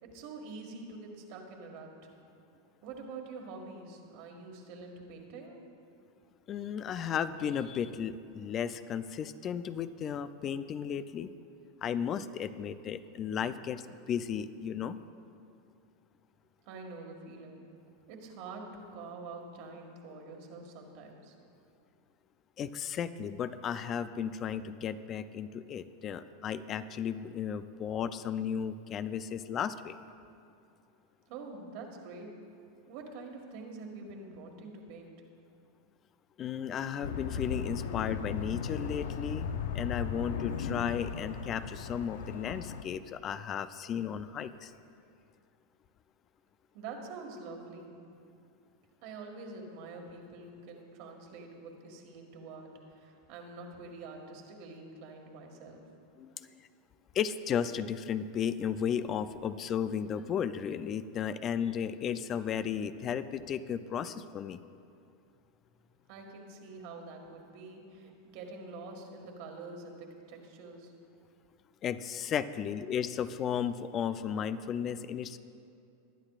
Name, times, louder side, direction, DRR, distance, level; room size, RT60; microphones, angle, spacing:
voice 1, 0.0-1.9 2.8-5.6 16.7-17.6 18.1-21.3 31.3-32.3 32.9-35.1 46.7-47.9 49.0-55.8 66.1-70.9, right 3 dB, 60° right, 2 dB, 1.8 m, -46 dB
voice 2, 6.5-11.3 11.8-15.0 22.6-30.0 36.4-39.5 39.7-44.7 56.2-56.6 57.1-64.6 71.8-75.4, left 8 dB, 35° left, 13 dB, 0.4 m, -34 dB
sound 1, 37.0-42.8, left 6 dB, 80° left, 0.6 m, -36 dB
20.5 x 9.7 x 2.5 m, 2.5 s
hypercardioid pair, 120°, 0 cm